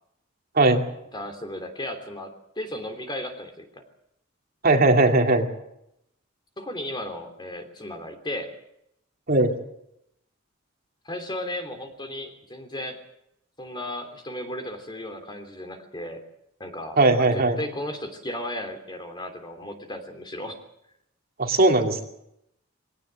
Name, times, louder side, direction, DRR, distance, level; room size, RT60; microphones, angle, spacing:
voice 1, 1.1-3.8 6.6-8.5 11.0-13.0 13.6-16.2 16.6-20.6, left 1 dB, 20° left, 6 dB, 3.1 m, -35 dB
voice 2, 4.6-5.5 9.3-9.5 17.0-17.6 21.4-22.0, right 2 dB, 45° right, 3 dB, 2.5 m, -19 dB
22.0 x 18.0 x 7.7 m, 0.78 s
head